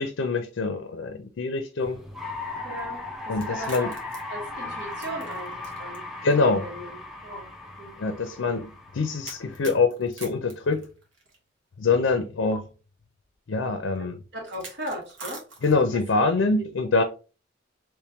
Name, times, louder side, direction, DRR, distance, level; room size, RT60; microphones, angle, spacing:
voice 1, 0.0-2.0 3.3-3.9 6.2-6.7 8.0-10.8 11.8-12.7 13.5-14.2 15.6-17.0, left 3 dB, 75° left, 0.5 m, -25 dB
sound 1, 1.8-9.8, left 2 dB, ahead, 0.6 m, -37 dB
voice 2, 2.6-3.9 4.3-6.0 6.4-7.0 7.2-7.5 7.8-8.1 14.0-15.4 15.9-16.0 16.6-16.7, right 1 dB, 65° right, 1.8 m, -38 dB
sound 2, 3.3-6.0 6.3-6.4 7.3-7.4 9.2-11.4 12.5-12.6 14.5-16.0, right 3 dB, 85° right, 1.2 m, -43 dB
3.5 x 3.0 x 3.0 m
head